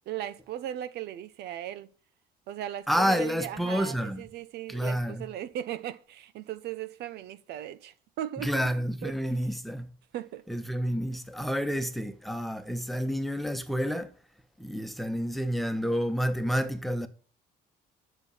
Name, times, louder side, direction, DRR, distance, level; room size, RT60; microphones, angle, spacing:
voice 1, 0.1-1.9 2.5-8.5 9.0-9.1 10.1-10.4, right 11 dB, 75° right, 1.0 m, -37 dB
voice 2, 2.9-4.2 4.7-5.3 8.4-9.9 10.5-14.1 14.6-17.1, equal, ahead, 1.3 m, -29 dB
11.5 x 7.1 x 6.1 m
cardioid pair, 110°, 17 cm